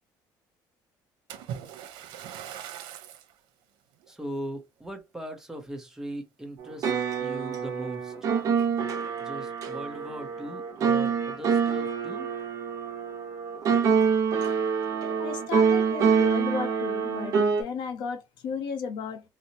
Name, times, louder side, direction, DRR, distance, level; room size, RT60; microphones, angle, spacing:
Splash splatter, 1.3-3.3 4.0-4.2 4.8-4.9, right 9 dB, 90° right, 0.7 m, -40 dB
voice 1, 4.1-6.9 7.2-8.3 9.2-12.3, equal, 5° right, 0.7 m, -39 dB
sound 1, 6.6-17.6, right 6 dB, 45° right, 0.8 m, -26 dB
voice 2, 15.2-19.2, left 6 dB, 70° left, 0.7 m, -34 dB
4.1 x 2.0 x 2.7 m
cardioid pair, 170°, 8 cm